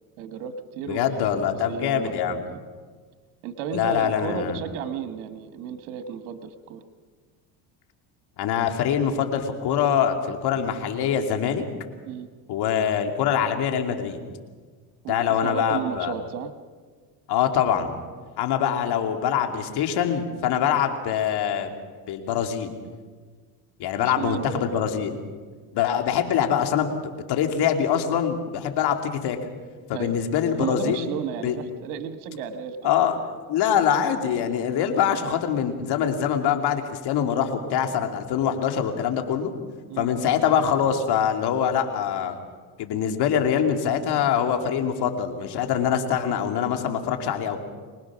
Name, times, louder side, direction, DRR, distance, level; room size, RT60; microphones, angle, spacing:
voice 1, 0.2-1.4 1.7-2.6 3.4-6.8 12.0-12.3 15.0-15.2 15.4-16.5 24.0-24.8 29.9-30.1 30.6-32.9 39.9-40.1, right 7 dB, 85° right, 9 dB, 1.4 m, -33 dB
voice 2, 0.9-2.4 3.7-4.6 8.4-11.6 12.5-14.2 15.1-16.1 17.3-17.9 18.4-21.7 22.1-22.7 23.8-25.1 25.7-26.9 27.3-29.4 29.9-31.1 31.4-31.6 32.8-33.2 33.5-39.5 40.0-42.4 42.8-47.6, left 8 dB, 60° left, 5 dB, 2.8 m, -24 dB
24.5 x 20.0 x 6.2 m, 1.5 s
supercardioid pair, 100°, 44 cm